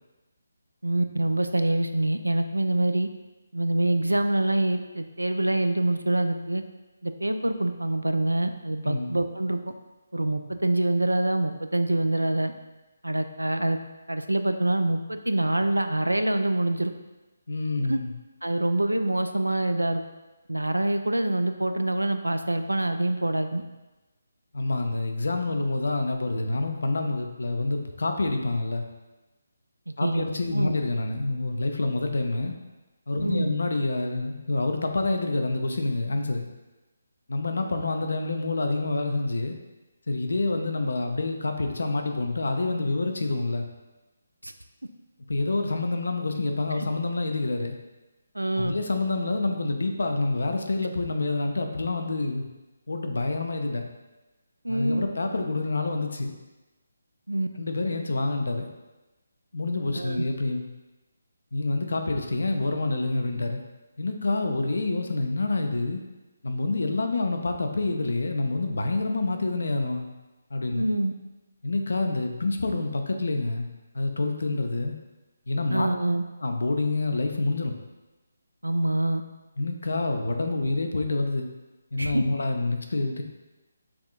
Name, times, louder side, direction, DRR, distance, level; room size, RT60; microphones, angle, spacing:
voice 1, 0.8-3.1 3.5-6.6 7.0-9.7 10.1-12.5 13.0-13.8 14.1-16.9 17.9-18.0 18.4-20.0 20.5-23.6 29.9-30.7 33.2-33.5 44.4-44.5 48.3-48.7 54.6-55.1 57.3-57.5 59.9-60.2 70.7-71.1 75.7-76.2 78.6-79.2 82.0-82.2, right 1 dB, 80° right, 8 dB, 0.3 m, -25 dB
voice 2, 8.8-9.2 17.5-18.1 24.5-28.8 30.0-32.5 33.1-36.5 37.3-39.6 40.1-43.7 45.3-47.7 48.6-52.4 52.9-53.9 54.7-56.3 57.6-58.7 59.5-60.6 61.5-63.6 64.0-66.0 66.4-70.1 70.5-70.9 71.6-73.7 73.9-74.9 75.5-75.9 76.4-77.8 79.6-81.5 81.9-83.2, left 2 dB, 60° left, 4 dB, 0.6 m, -27 dB
6.0 x 3.6 x 2.4 m, 1.1 s
figure-of-eight pair, 145°, 0 cm